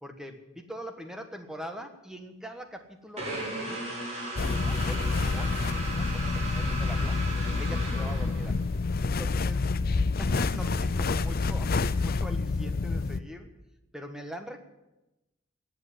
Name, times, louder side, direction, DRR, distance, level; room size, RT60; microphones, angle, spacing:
voice 1, 0.0-3.9 4.4-7.3 7.6-8.6 9.0-9.6 10.2-13.5 13.9-14.6, equal, 5° right, 6 dB, 1.4 m, -43 dB
sound 1, 3.2-8.8, right 1 dB, 35° right, 5.5 m, -36 dB
sound 2, 4.4-13.2, left 3 dB, 45° left, 0.6 m, -28 dB
18.0 x 8.0 x 9.7 m, 0.97 s
head